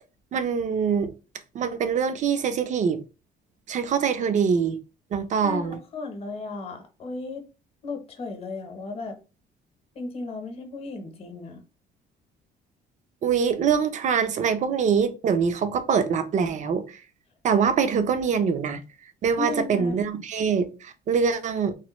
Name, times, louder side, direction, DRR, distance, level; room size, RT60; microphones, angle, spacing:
voice 1, 0.3-1.1 1.6-3.0 3.7-4.7 5.1-5.8 13.2-16.8 17.4-18.8 19.2-20.7 21.1-21.7, right 6 dB, 45° right, 0.6 m, -24 dB
voice 2, 5.4-7.4 7.8-9.2 9.9-11.6 19.4-20.0, left 3 dB, 35° left, 0.9 m, -35 dB
3.1 x 2.2 x 3.0 m
cardioid pair, 110°, 17 cm